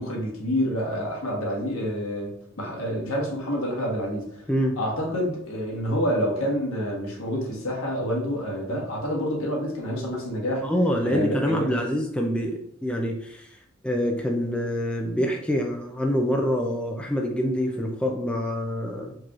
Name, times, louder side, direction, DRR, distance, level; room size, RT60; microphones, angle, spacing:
voice 1, 0.0-2.3 2.6-4.4 4.8-10.6 11.0-11.8, equal, 70° left, -2 dB, 1.3 m, -28 dB
voice 2, 10.6-13.5 13.8-19.2, equal, 5° left, 1 dB, 0.3 m, -26 dB
4.6 x 2.9 x 2.4 m, 0.71 s
head